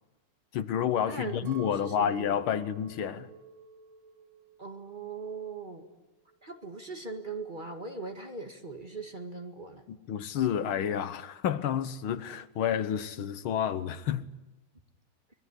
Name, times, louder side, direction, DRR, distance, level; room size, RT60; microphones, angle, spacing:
voice 1, 0.5-3.3 9.9-14.3, left 9 dB, 85° left, 1.9 m, -30 dB
voice 2, 1.1-2.4 4.6-5.8 6.4-9.8, right 3 dB, 25° right, 2.0 m, -40 dB
Chink clink, 1.5-5.8 6.1-6.9, right 6 dB, 85° right, 3.3 m, -51 dB
25.0 x 21.5 x 9.9 m
omnidirectional pair, 2.2 m